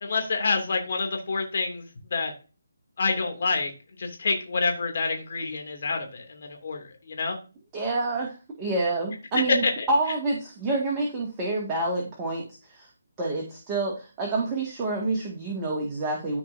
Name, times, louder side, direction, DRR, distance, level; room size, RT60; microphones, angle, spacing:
voice 1, 0.0-2.3 3.0-3.7 4.0-7.4, left 4 dB, 55° left, 3 dB, 2.7 m, -28 dB
voice 2, 7.7-12.9 13.2-16.4, right 2 dB, 20° right, -2 dB, 2.0 m, -28 dB
14.0 x 4.9 x 2.8 m, 0.32 s
figure-of-eight pair, 150°, 0 cm